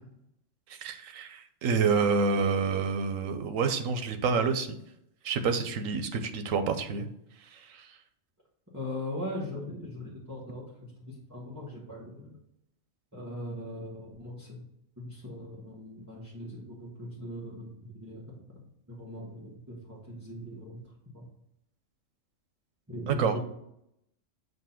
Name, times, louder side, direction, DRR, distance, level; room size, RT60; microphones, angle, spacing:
voice 1, 0.8-4.7 5.2-7.1 7.5-7.9 23.1-23.3, right 5 dB, 85° right, 8 dB, 1.1 m, -28 dB
voice 2, 8.7-12.4 13.1-14.6 15.0-20.8 21.1-21.2 22.9-23.4, left 1 dB, 15° right, -7 dB, 1.2 m, -40 dB
7.6 x 2.7 x 5.7 m, 0.77 s
omnidirectional pair, 1.3 m